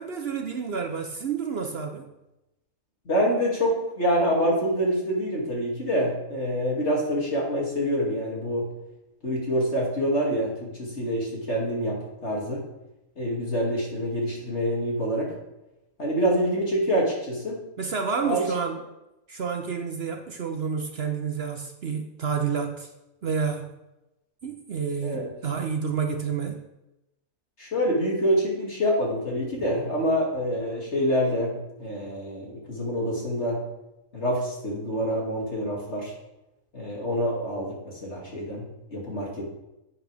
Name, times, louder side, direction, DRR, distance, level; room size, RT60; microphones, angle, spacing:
voice 1, 0.0-2.1 17.8-18.8 19.3-22.9 23.2-23.7 24.4-26.6, right 6 dB, 55° right, 5 dB, 0.9 m, -29 dB
voice 2, 3.0-8.7 9.2-12.6 13.2-15.3 16.0-17.6 18.2-18.5 25.0-25.3 27.6-33.6 34.1-36.1 36.7-39.5, equal, 55° left, -3 dB, 2.9 m, -26 dB
11.0 x 8.4 x 3.5 m, 0.93 s
omnidirectional pair, 1.4 m